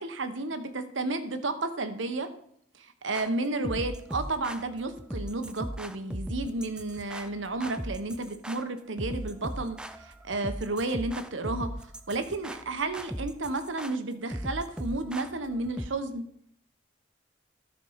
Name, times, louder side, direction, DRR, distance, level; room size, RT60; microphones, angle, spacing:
voice 1, 0.0-2.3 2.8-11.7 12.1-16.2, right 2 dB, 90° right, 9 dB, 1.0 m, -32 dB
sound 1, 3.1-15.9, equal, 5° right, 0.3 m, -38 dB
13.0 x 4.6 x 5.6 m, 0.67 s
head